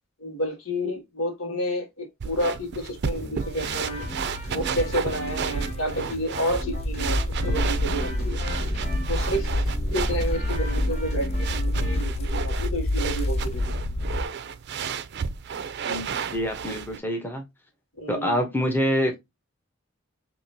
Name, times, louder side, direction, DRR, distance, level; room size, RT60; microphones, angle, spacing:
voice 1, 0.2-4.0 4.5-7.2 7.4-8.4 9.1-9.5 9.9-13.7 18.0-18.4, equal, 90° left, 1.6 m, -30 dB
sound 1, 2.2-17.0, right 6 dB, 55° right, 0.4 m, -33 dB
sound 2, 3.1-12.0, right 1 dB, 55° left, 2.6 m, -38 dB
sound 3, 3.5-14.2, left 1 dB, 30° left, 0.4 m, -28 dB
voice 2, 15.9-17.4 18.1-19.2, equal, 10° left, 0.9 m, -26 dB
5.0 x 2.9 x 2.7 m
head